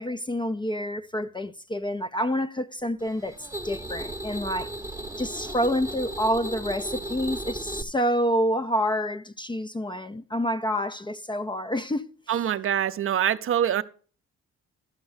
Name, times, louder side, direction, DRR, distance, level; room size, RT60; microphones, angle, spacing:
voice 1, 0.0-4.7 5.2-12.1, equal, 15° left, 0.4 m, -28 dB
sound 1, 3.0-7.8, right 1 dB, 10° right, 0.7 m, -35 dB
voice 2, 12.3-13.8, right 10 dB, 45° right, 0.5 m, -24 dB
12.5 x 5.3 x 4.8 m
cardioid pair, 90°, 30 cm